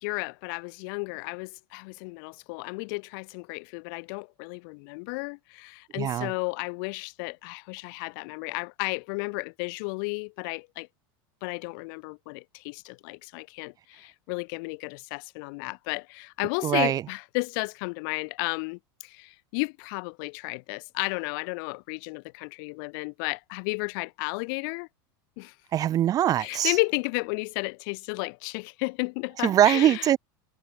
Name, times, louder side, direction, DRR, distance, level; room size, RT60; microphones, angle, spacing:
voice 1, 0.0-10.9 11.4-24.9 25.4-25.5 26.4-30.1, left 32 dB, 60° left, 0.5 m, -33 dB
voice 2, 5.9-6.3 16.6-17.0 25.7-26.8 29.4-30.2, right 11 dB, 30° right, 0.4 m, -22 dB
supercardioid pair, 130°, 13 cm